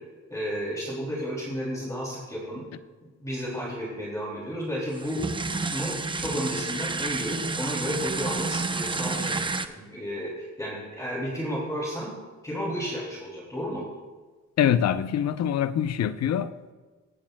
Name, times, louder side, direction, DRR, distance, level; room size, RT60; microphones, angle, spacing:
voice 1, 0.3-2.6 3.2-5.3 5.7-12.1 12.4-13.8, equal, 10° left, 2.6 m, -32 dB
sound 1, 4.9-9.7, right 3 dB, 15° right, 0.6 m, -30 dB
voice 2, 14.6-16.7, left 9 dB, 60° left, 0.6 m, -24 dB
22.5 x 8.5 x 2.2 m
cardioid pair, 90°, 30 cm